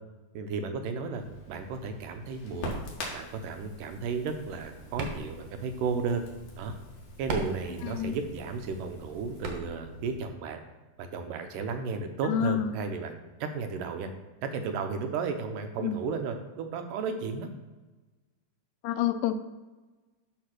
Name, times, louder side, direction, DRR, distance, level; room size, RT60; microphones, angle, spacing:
voice 1, 0.3-2.8 3.1-6.2 6.6-6.7 7.2-10.6 11.0-14.1 14.4-17.5, right 5 dB, 85° right, 6 dB, 2.5 m, -34 dB
Crackle, 1.2-9.4, left 1 dB, 55° left, 2.8 m, -44 dB
sound 1, 4.3-10.3, right 2 dB, 60° right, 1.9 m, -41 dB
voice 2, 7.8-8.2 12.2-12.7 15.8-16.0 18.8-19.3, left 10 dB, 80° left, 10 dB, 2.1 m, -28 dB
11.5 x 3.9 x 6.0 m, 1.2 s
omnidirectional pair, 3.7 m